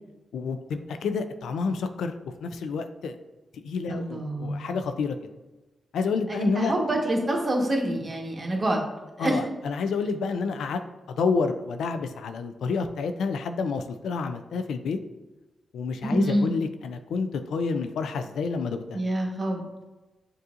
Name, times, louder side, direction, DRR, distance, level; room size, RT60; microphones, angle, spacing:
voice 1, 0.3-3.2 3.6-5.2 5.9-6.7 9.2-10.8 11.1-15.0 15.7-19.0, left 4 dB, 85° left, 8 dB, 0.3 m, -29 dB
voice 2, 3.9-4.6 6.3-8.8 9.2-9.4 16.0-16.5 18.9-19.8, right 1 dB, 35° right, 0 dB, 1.1 m, -26 dB
6.6 x 2.6 x 2.4 m, 1.1 s
supercardioid pair, 50°, 0 cm